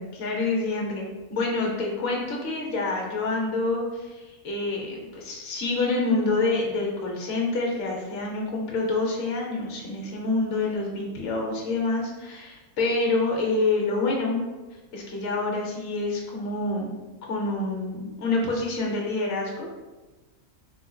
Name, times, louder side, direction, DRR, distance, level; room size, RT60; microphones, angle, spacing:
voice 1, 0.0-14.4 14.9-16.9 17.3-19.7, left 3 dB, 55° left, -1 dB, 0.8 m, -27 dB
3.6 x 2.6 x 2.2 m, 1.2 s
omnidirectional pair, 1.4 m